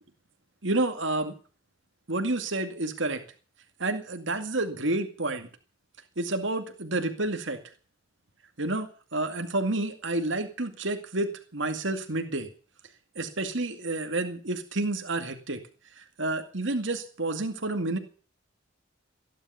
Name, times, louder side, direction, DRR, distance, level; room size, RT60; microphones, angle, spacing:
voice 1, 0.6-1.3 2.1-3.2 3.8-5.5 6.2-7.6 8.6-12.5 13.2-15.6 16.0-18.0, right 2 dB, 70° right, 6 dB, 2.2 m, -29 dB
17.0 x 11.0 x 7.0 m, 0.40 s
head